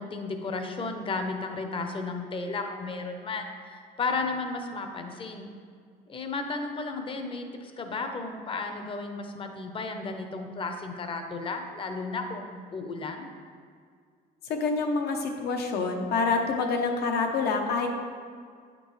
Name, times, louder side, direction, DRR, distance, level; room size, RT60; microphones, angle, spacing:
voice 1, 0.0-5.5 6.1-13.3, left 3 dB, 30° left, 5 dB, 0.7 m, -34 dB
voice 2, 14.5-17.9, left 4 dB, 70° left, 3 dB, 0.9 m, -27 dB
8.7 x 5.2 x 3.2 m, 2.1 s
cardioid pair, 110°, 17 cm